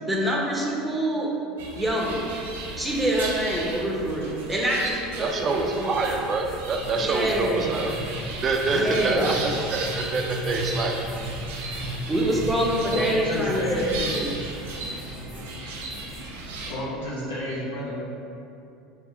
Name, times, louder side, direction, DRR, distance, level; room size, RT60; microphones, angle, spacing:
voice 1, 0.0-1.3 1.7-2.2 2.8-5.9 7.0-7.7 8.7-9.4 12.1-14.3, right 1 dB, 10° right, -2 dB, 0.8 m, -26 dB
sound 1, 1.6-16.7, right 2 dB, 85° right, 0.6 m, -35 dB
voice 2, 5.2-7.9 8.4-11.0, right 3 dB, 35° right, 2 dB, 0.5 m, -26 dB
sound 2, 6.0-16.3, right 1 dB, 30° left, 1.4 m, -38 dB
voice 3, 12.9-14.1 16.7-18.0, left 1 dB, 85° left, -7 dB, 1.3 m, -29 dB
3.6 x 3.4 x 3.5 m, 2.6 s
supercardioid pair, 95°, 0 cm